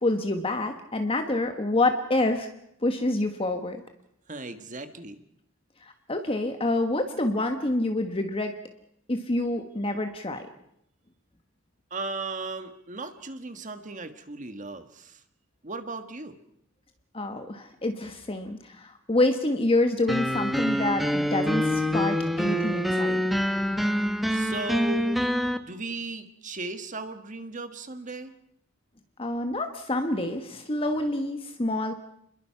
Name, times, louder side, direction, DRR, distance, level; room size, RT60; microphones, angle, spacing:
voice 1, 0.0-2.5 2.8-3.8 5.8-8.5 9.1-10.4 17.1-23.2 29.2-31.9, left 2 dB, 25° left, 6 dB, 1.4 m, -27 dB
voice 2, 4.3-5.2 11.9-15.2 15.6-16.4 24.3-25.3 25.6-28.3, right 3 dB, 40° right, 8 dB, 1.6 m, -36 dB
sound 1, 20.1-25.6, equal, ahead, 1.1 m, -26 dB
28.0 x 21.5 x 5.8 m, 0.74 s
head